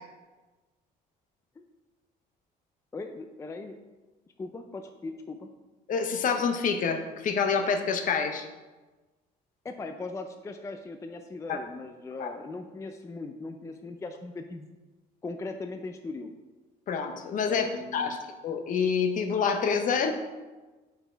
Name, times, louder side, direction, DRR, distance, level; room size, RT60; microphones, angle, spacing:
voice 1, 2.9-3.8 4.4-5.5 9.6-14.7 15.2-16.3 17.4-18.2 19.9-20.1, left 3 dB, 20° left, 6 dB, 0.4 m, -39 dB
voice 2, 5.9-8.5 11.5-11.6 12.2-12.3 16.9-17.7 17.9-20.1, left 6 dB, 50° left, 7 dB, 0.7 m, -27 dB
5.6 x 4.3 x 4.4 m, 1.2 s
cardioid pair, 110°, 17 cm